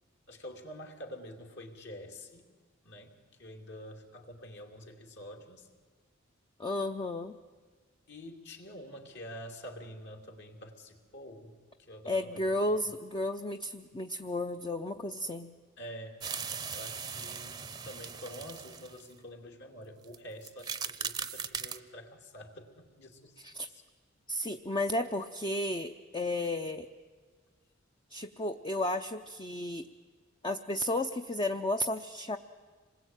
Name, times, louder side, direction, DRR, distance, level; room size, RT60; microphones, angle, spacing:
voice 1, 0.3-2.5 2.8-5.7 8.1-12.5 15.8-16.2 16.7-23.3 23.7-23.8, equal, 55° left, 3 dB, 2.9 m, -47 dB
voice 2, 6.6-7.3 12.1-15.6 23.4-23.7 24.3-26.9 28.1-29.9 30.4-32.4, left 1 dB, 25° left, 6 dB, 0.7 m, -33 dB
sound 1, 16.2-19.1 20.0-20.2 20.4-21.8, right 6 dB, 20° right, 0.7 m, -39 dB
27.0 x 20.5 x 9.1 m, 1.4 s
head